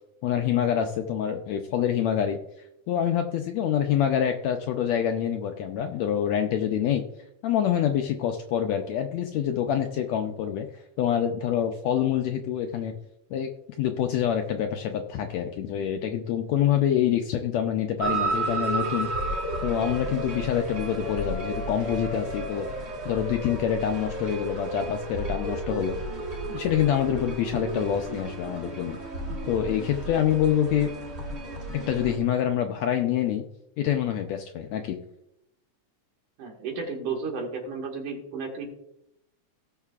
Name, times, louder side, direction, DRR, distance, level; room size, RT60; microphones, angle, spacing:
voice 1, 0.2-2.4 2.9-7.0 7.4-12.9 13.3-13.5 13.8-22.7 23.0-26.0 26.5-29.0 29.5-30.9 31.9-33.4 33.8-35.0, left 9 dB, 75° left, 5 dB, 1.7 m, -26 dB
Train alarm, 18.0-32.2, right 2 dB, 45° right, 0.8 m, -32 dB
voice 2, 36.4-38.7, right 4 dB, 70° right, 1 dB, 3.2 m, -33 dB
18.0 x 6.7 x 2.4 m, 0.82 s
omnidirectional pair, 3.6 m